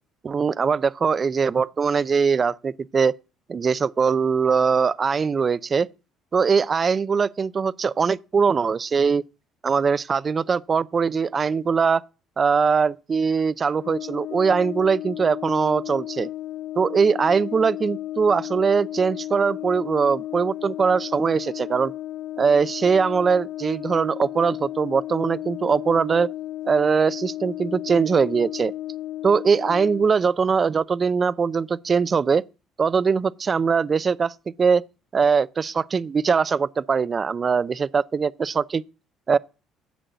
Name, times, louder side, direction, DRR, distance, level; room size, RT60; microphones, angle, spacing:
voice 1, 0.2-3.1 3.5-5.9 6.3-9.2 9.6-12.0 12.4-16.3 16.8-21.9 22.4-26.3 26.7-28.7 29.2-32.4 32.8-34.8 35.1-38.8 39.3-39.4, right 5 dB, 30° right, 0.5 m, -21 dB
Brass instrument, 13.7-30.1, left 14 dB, 85° left, 1.5 m, -34 dB
10.5 x 7.7 x 6.8 m
cardioid pair, 115°, 0 cm